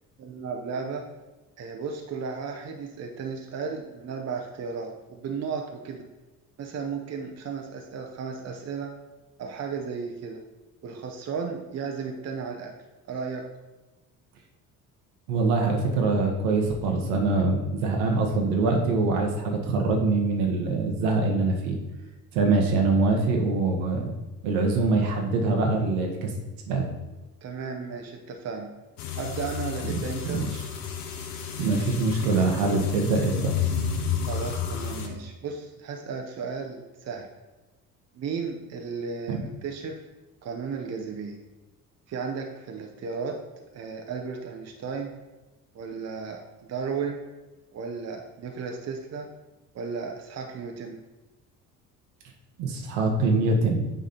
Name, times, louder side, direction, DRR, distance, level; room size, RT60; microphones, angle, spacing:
voice 1, 0.2-1.0 1.6-6.0 6.6-8.9 9.4-10.4 10.8-12.7 13.1-13.4 27.4-28.7 29.2-30.4 34.3-37.3 38.1-40.0 40.4-41.4 42.1-43.4 43.7-45.1 45.7-46.4 46.7-47.2 47.7-49.3 49.7-51.0, right 5 dB, 35° right, 3 dB, 0.9 m, -34 dB
voice 2, 15.3-21.8 22.3-24.1 24.4-26.3 26.6-26.8 29.8-30.0 30.2-30.6 31.6-33.5 39.3-39.4 52.6-53.8, right 3 dB, 65° right, 1 dB, 1.3 m, -24 dB
sound 1, 29.0-35.1, left 7 dB, 60° left, 0.9 m, -31 dB
9.0 x 3.8 x 4.3 m, 1.1 s
figure-of-eight pair, 50°, 45 cm